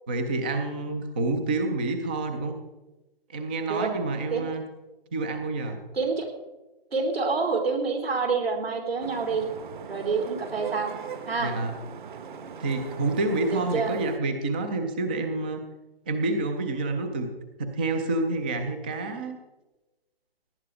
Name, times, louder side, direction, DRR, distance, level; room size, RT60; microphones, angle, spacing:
voice 1, 0.1-2.5 3.3-4.6 5.1-5.8 11.4-11.7 12.6-15.6 16.1-17.3 17.6-19.4, right 2 dB, 10° right, 7 dB, 0.4 m, -28 dB
voice 2, 5.9-6.3 6.9-9.4 9.9-10.9 11.3-11.5 13.5-13.9, right 4 dB, 75° right, 2 dB, 4.1 m, -27 dB
Vehicle horn car horn honking / Traffic noise roadway noise, 9.0-14.2, right 6 dB, 50° right, 1.4 m, -40 dB
18.0 x 10.5 x 4.9 m, 1.1 s
figure-of-eight pair, 140°, 30 cm